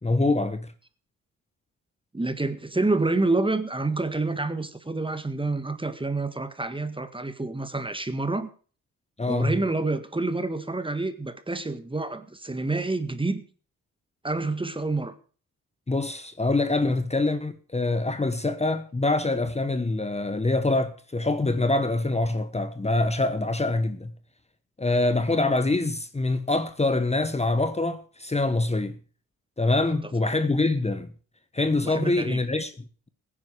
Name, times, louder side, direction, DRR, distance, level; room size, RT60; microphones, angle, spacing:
voice 1, 0.0-0.7 9.2-9.6 15.9-24.1 24.8-29.0 29.6-31.1 31.5-33.1, left 2 dB, 20° left, 1.3 m, -25 dB
voice 2, 2.1-8.5 9.3-13.4 14.2-15.1 31.8-32.4, right 2 dB, 15° right, 1.7 m, -28 dB
16.0 x 10.0 x 4.9 m
cardioid pair, 65°, 32 cm